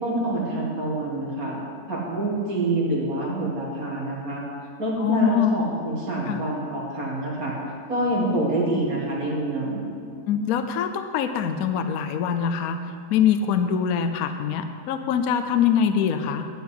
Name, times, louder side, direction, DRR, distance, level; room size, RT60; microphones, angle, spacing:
voice 1, 0.0-1.6 1.9-4.4 4.8-7.5 7.9-9.9, right 1 dB, 60° right, -4 dB, 2.4 m, -26 dB
voice 2, 5.0-5.5 6.3-6.4 10.3-12.8 13.1-16.5, left 8 dB, 65° left, 8 dB, 1.0 m, -24 dB
10.5 x 5.6 x 8.5 m, 2.3 s
omnidirectional pair, 1.8 m